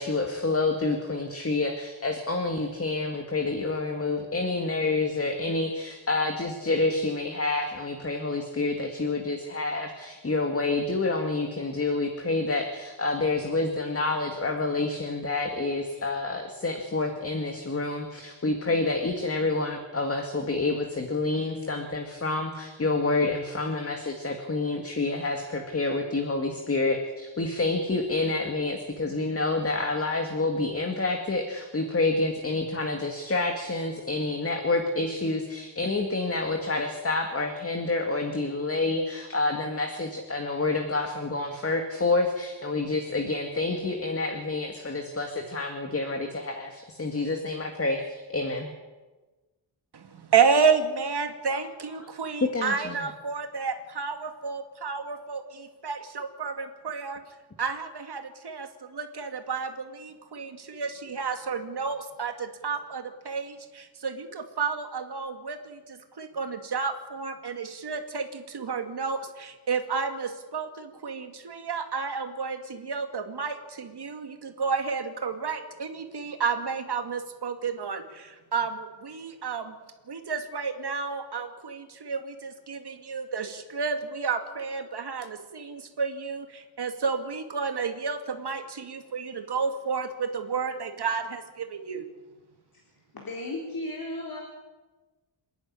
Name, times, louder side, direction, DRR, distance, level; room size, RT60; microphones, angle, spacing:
voice 1, 0.0-48.7 51.5-51.6 52.5-53.0, left 3 dB, 30° left, 4 dB, 2.0 m, -28 dB
voice 2, 49.9-79.7 80.1-92.1, right 5 dB, 55° right, 6 dB, 2.2 m, -31 dB
voice 3, 93.1-94.4, left 2 dB, 50° left, 0 dB, 3.9 m, -35 dB
27.5 x 10.5 x 9.8 m, 1.2 s
wide cardioid pair, 150°, 47 cm